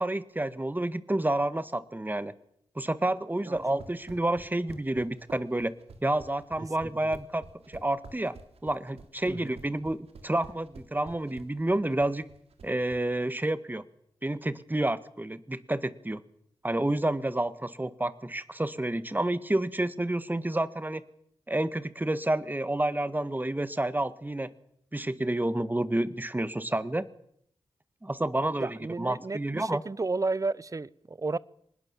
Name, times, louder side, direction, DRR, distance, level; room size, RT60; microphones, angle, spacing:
voice 1, 0.0-2.3 2.8-5.7 6.0-8.4 8.6-12.3 12.6-13.8 14.2-16.2 16.6-21.0 21.5-24.5 24.9-27.1 28.0-29.8, right 1 dB, 20° right, 13 dB, 1.8 m, -29 dB
sound 1, 3.4-13.0, right 4 dB, 90° right, 3.3 m, -49 dB
voice 2, 28.6-31.4, right 3 dB, 35° right, 21 dB, 0.9 m, -32 dB
25.0 x 20.5 x 7.2 m, 0.70 s
cardioid pair, 55°, 10 cm